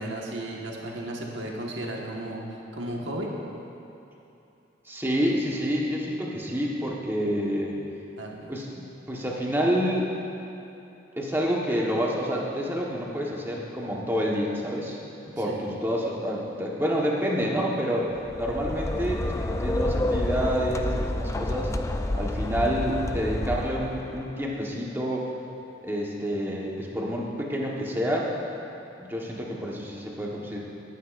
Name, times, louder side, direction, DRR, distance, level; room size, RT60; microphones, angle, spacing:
voice 1, 0.0-2.4 2.7-3.3 8.2-8.5 15.5-15.6, right 1 dB, 85° right, -2 dB, 1.5 m, -34 dB
voice 2, 4.9-7.8 8.5-10.2 11.2-15.0 15.3-18.1 18.4-21.7 22.1-25.3 25.8-28.3 29.0-30.6, equal, 10° right, -3 dB, 1.3 m, -28 dB
sound 1, 18.2-24.2, left 1 dB, 15° left, 0.4 m, -29 dB
21.0 x 9.4 x 2.5 m, 2.8 s
head